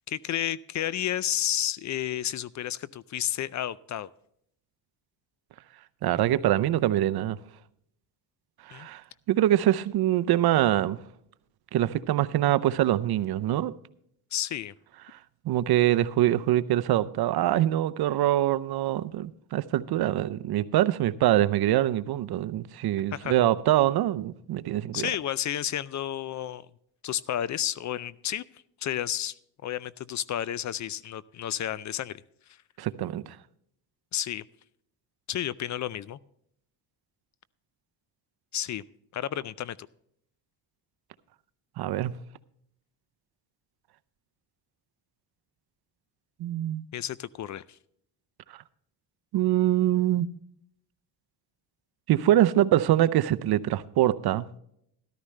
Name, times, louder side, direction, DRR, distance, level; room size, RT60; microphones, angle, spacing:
voice 1, 0.1-4.1 8.7-8.9 14.3-14.7 23.1-23.4 24.9-26.7 27.0-28.4 28.8-29.3 29.6-32.2 32.5-32.6 34.1-34.4 35.3-36.2 38.5-38.8 39.1-39.9 46.9-47.8, left 11 dB, 45° left, 0.4 m, -31 dB
voice 2, 6.0-7.4 8.7-9.0 9.3-11.0 11.7-13.7 15.5-25.1 32.8-33.2 41.8-42.1 46.4-46.8 49.3-50.3 52.1-54.5, right 13 dB, 65° right, 0.7 m, -24 dB
13.5 x 12.5 x 3.2 m
cardioid pair, 120°, 41 cm